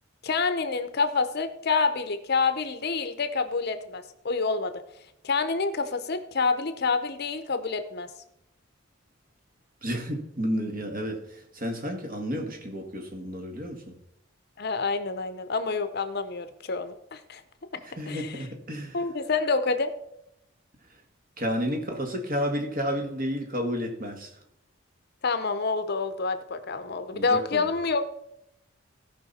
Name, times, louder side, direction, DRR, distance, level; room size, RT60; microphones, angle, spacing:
voice 1, 0.2-4.7 5.2-8.1 14.6-17.4 18.1-18.4 18.9-19.9 25.2-28.1, left 4 dB, 50° left, 11 dB, 0.7 m, -27 dB
voice 2, 9.8-13.8 18.0-19.0 21.4-24.3 27.1-27.7, equal, 45° right, 3 dB, 1.7 m, -31 dB
17.0 x 5.6 x 4.2 m, 0.81 s
head